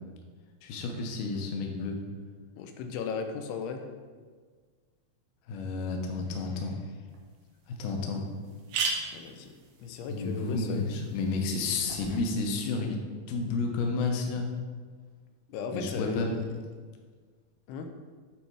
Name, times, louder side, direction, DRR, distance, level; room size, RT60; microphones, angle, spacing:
voice 1, 0.6-2.0 5.5-6.7 7.7-8.2 10.1-13.0 13.3-14.5 15.7-16.4, left 3 dB, 75° left, 2 dB, 2.1 m, -31 dB
voice 2, 2.6-3.9 8.1-8.2 9.1-9.5 9.8-10.9 15.5-16.5 17.7-17.9, left 5 dB, 90° left, 5 dB, 2.6 m, -36 dB
sound 1, 7.1-7.2 7.7-7.8 8.0-8.1 8.4-12.2, right 4 dB, 80° right, 1.7 m, -37 dB
8.8 x 3.4 x 4.7 m, 1.6 s
omnidirectional pair, 4.4 m